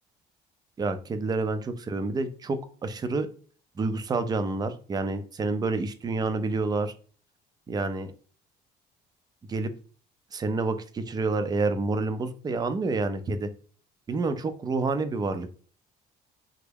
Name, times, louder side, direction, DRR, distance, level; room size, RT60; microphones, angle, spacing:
voice 1, 0.8-3.3 3.8-6.9 7.7-8.1 9.5-9.7 10.3-13.5 14.1-15.6, right 3 dB, 25° right, 10 dB, 0.4 m, -28 dB
3.4 x 2.1 x 3.4 m, 0.41 s
cardioid pair, 110°, 17 cm